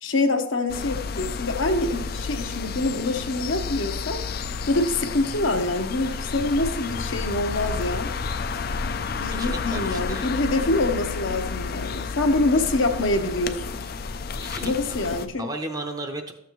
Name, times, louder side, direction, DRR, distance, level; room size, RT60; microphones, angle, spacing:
voice 1, 0.0-4.2 4.7-8.1 9.2-13.8 14.6-15.5, left 2 dB, 65° left, 5 dB, 0.9 m, -25 dB
sound 1, 0.7-15.3, left 5 dB, 45° left, 0.4 m, -31 dB
voice 2, 9.3-10.3 14.4-15.0 15.4-16.3, right 2 dB, 15° right, 5 dB, 0.6 m, -35 dB
13.0 x 7.2 x 3.1 m, 0.83 s
head